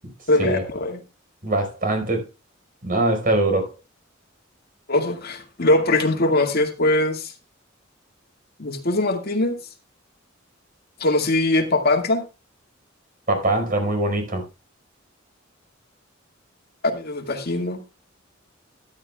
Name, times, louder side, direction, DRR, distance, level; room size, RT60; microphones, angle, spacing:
voice 1, 0.3-1.0 4.9-7.3 8.6-9.6 11.0-12.2 16.8-17.8, left 2 dB, 55° left, 2.0 m, -21 dB
voice 2, 1.4-2.2 2.8-3.7 13.3-14.4, right 2 dB, 45° right, 4.7 m, -22 dB
13.5 x 12.0 x 2.3 m
head